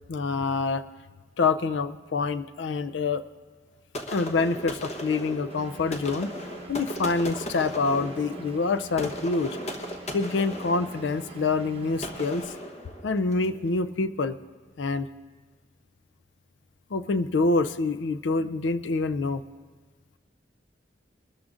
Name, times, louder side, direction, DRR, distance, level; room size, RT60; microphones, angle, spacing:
voice 1, 0.1-0.8 1.4-3.2 4.1-6.3 6.7-9.6 10.1-12.5 13.0-14.4 14.8-15.1 16.9-19.4, left 3 dB, 65° left, 13 dB, 0.5 m, -26 dB
sound 1, 3.9-13.6, equal, 35° left, 1.0 m, -37 dB
Engine, 5.5-12.4, right 2 dB, 30° right, 0.9 m, -45 dB
21.5 x 13.0 x 2.5 m, 1.4 s
head